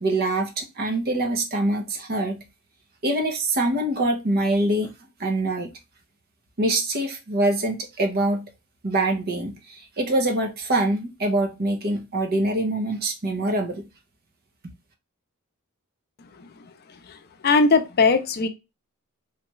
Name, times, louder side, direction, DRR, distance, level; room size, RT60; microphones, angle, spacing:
voice 1, 0.0-2.4 3.0-4.9 5.2-5.7 6.6-8.4 8.8-13.9, right 1 dB, 45° right, 0.7 m, -24 dB
voice 2, 16.2-18.5, left 4 dB, 45° left, 0.5 m, -22 dB
3.2 x 2.4 x 3.0 m
head